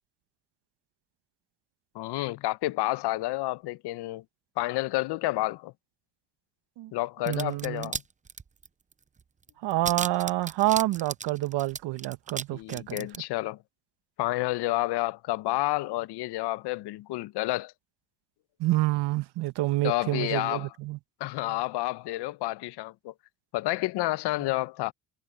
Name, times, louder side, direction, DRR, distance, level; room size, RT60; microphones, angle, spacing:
voice 1, 1.9-4.2 4.6-5.7 6.9-8.0 12.5-13.6 14.2-17.7 19.8-20.7 21.2-23.1 23.5-24.9, left 18 dB, 60° left, 1.0 m, -30 dB
sound 1, 7.3-8.0 8.3-8.9 9.2-9.3 9.5-12.4 12.7-13.2, right 5 dB, 15° right, 0.7 m, -35 dB
voice 2, 7.3-7.9 9.6-13.1 18.6-21.0, right 17 dB, 60° right, 1.4 m, -28 dB
supercardioid pair, 85°, 45 cm